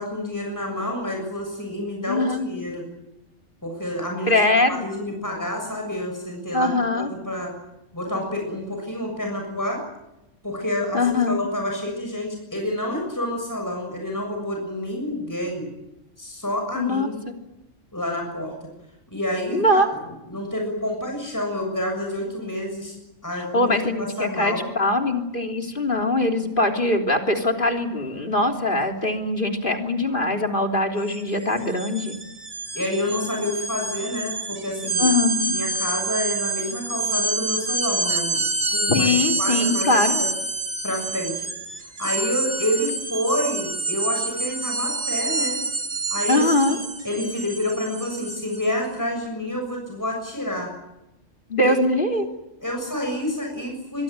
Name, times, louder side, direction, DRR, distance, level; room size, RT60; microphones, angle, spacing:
voice 1, 0.0-2.9 3.6-4.4 4.7-7.5 7.9-9.8 10.4-15.7 16.2-17.2 17.9-18.5 19.1-19.8 20.3-23.0 23.2-23.7 24.0-24.7 32.7-35.1 35.5-39.1 39.4-40.3 40.8-41.5 41.8-45.6 46.1-46.5 47.0-50.7 51.6-51.8 52.6-54.0, left 1 dB, 15° left, 2 dB, 6.9 m, -28 dB
voice 2, 2.1-2.4 4.3-4.9 6.5-7.1 10.9-11.4 16.7-17.4 19.5-19.9 23.5-32.2 35.0-35.6 38.9-40.2 46.3-46.8 51.5-52.3, left 2 dB, 40° left, 4 dB, 3.6 m, -22 dB
sound 1, 31.0-31.2 31.5-48.7, right 3 dB, 40° right, 2.1 m, -27 dB
25.0 x 23.5 x 9.2 m, 0.93 s
omnidirectional pair, 1.3 m